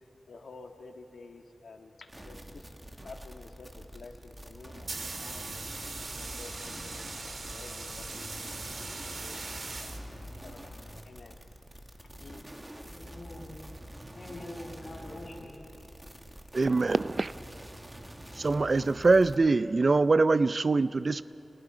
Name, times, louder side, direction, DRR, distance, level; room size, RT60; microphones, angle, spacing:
voice 1, 0.3-2.7 3.0-5.7 6.1-7.1 7.5-8.5 8.9-9.4 9.7-9.9 10.4-10.7 11.0-11.4 12.2-12.5 15.0-15.3 15.7-15.8, left 3 dB, 85° left, 4 dB, 1.7 m, -50 dB
sound 1, 2.1-19.4, right 1 dB, 15° right, 1.9 m, -46 dB
sound 2, 4.5-10.5, right 3 dB, 65° right, 1.8 m, -41 dB
sound 3, 5.5-11.0, left 2 dB, 70° left, 2.2 m, -50 dB
voice 2, 12.8-13.6 14.1-15.6, left 1 dB, 50° left, -4 dB, 7.3 m, -44 dB
voice 3, 16.5-17.3 18.4-21.2, right 3 dB, 50° right, 15 dB, 0.5 m, -24 dB
29.5 x 29.5 x 5.0 m, 2.9 s
wide cardioid pair, 85°, 0 cm